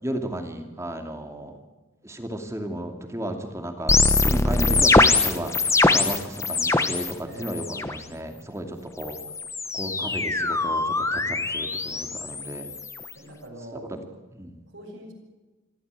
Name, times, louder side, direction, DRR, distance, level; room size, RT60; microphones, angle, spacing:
voice 1, 0.0-1.6 2.0-3.9 4.2-9.2 9.7-12.7 13.7-13.8 14.4-14.6, right 1 dB, 15° right, 5 dB, 2.6 m, -34 dB
sound 1, 3.9-7.1 7.4-8.0 9.0-13.1, left 3 dB, 15° left, 1.1 m, -23 dB
voice 2, 7.2-7.7 13.1-14.0 14.7-15.1, right 1 dB, 70° right, -1 dB, 6.6 m, -43 dB
26.5 x 13.5 x 8.4 m, 1.2 s
head